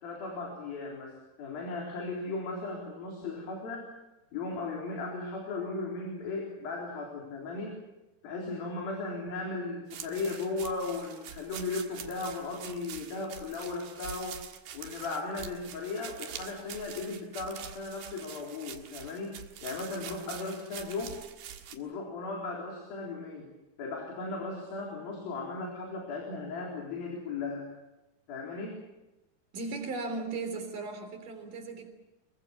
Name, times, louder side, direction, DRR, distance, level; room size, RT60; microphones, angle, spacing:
voice 1, 0.0-3.8 4.3-7.8 8.2-14.4 14.7-21.2 21.7-23.5 23.8-27.7 28.3-28.8, left 3 dB, 70° left, 5.7 m, -36 dB
sound 1, 9.9-21.8, right 9 dB, 75° right, 3.5 m, -45 dB
voice 2, 29.5-31.9, right 3 dB, 60° right, 5.0 m, -36 dB
26.5 x 23.0 x 7.1 m
omnidirectional pair, 4.3 m